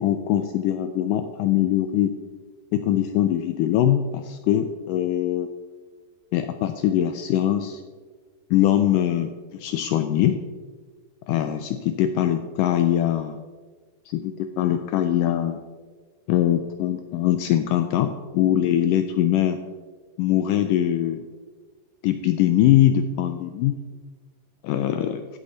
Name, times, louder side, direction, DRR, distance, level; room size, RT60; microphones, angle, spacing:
voice 1, 0.0-2.1 2.7-5.5 6.3-7.8 8.5-10.4 11.3-13.4 14.1-15.6 16.3-19.6 20.2-21.2 22.0-23.9 24.6-25.2, left 11 dB, 80° left, 8 dB, 1.9 m, -22 dB
14.0 x 8.3 x 4.1 m, 1.4 s
omnidirectional pair, 4.3 m